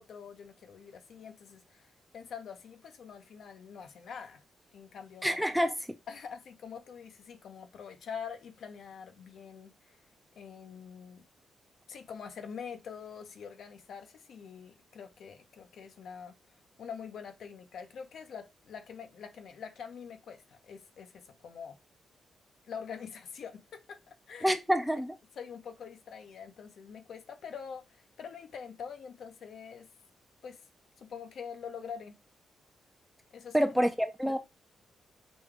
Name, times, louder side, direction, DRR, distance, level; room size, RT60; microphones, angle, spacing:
voice 1, 0.0-4.4 4.7-5.4 6.1-10.0 10.4-11.2 11.9-16.4 16.8-21.8 22.7-24.6 25.4-29.9 30.4-30.6 31.0-32.2 33.3-33.9, left 7 dB, 70° left, 0.7 m, -45 dB
voice 2, 5.2-5.8 24.4-25.1 33.5-34.4, equal, ahead, 0.5 m, -27 dB
5.1 x 2.3 x 3.6 m
cardioid pair, 115°, 0 cm